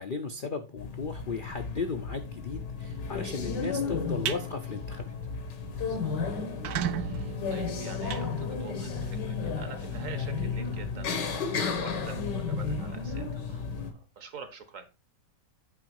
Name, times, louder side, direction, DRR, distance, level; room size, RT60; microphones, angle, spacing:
voice 1, 0.0-5.1, left 4 dB, 55° left, 0.5 m, -35 dB
sound 1, 0.8-13.9, left 5 dB, 80° left, 1.9 m, -33 dB
sound 2, 4.0-4.4 4.9-5.1 5.5-5.6 5.8-5.9 6.4-9.0, right 10 dB, 70° right, 1.1 m, -35 dB
voice 2, 5.9-6.4 7.0-14.8, right 5 dB, 50° right, 1.4 m, -46 dB
8.2 x 4.6 x 4.7 m
omnidirectional pair, 1.8 m